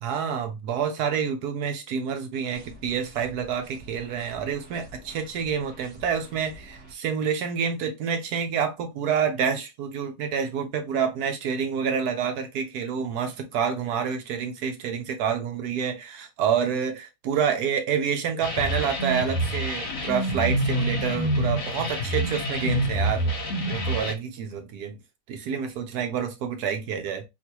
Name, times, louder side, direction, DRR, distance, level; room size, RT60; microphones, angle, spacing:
voice 1, 0.0-23.3 23.7-25.0 25.3-27.2, right 7 dB, 70° right, 1.1 m, -28 dB
sound 1, 2.5-6.9, right 1 dB, 45° right, 1.4 m, -48 dB
sound 2, 18.4-24.1, right 1 dB, 50° left, 0.9 m, -27 dB
3.8 x 2.4 x 2.8 m
omnidirectional pair, 1.9 m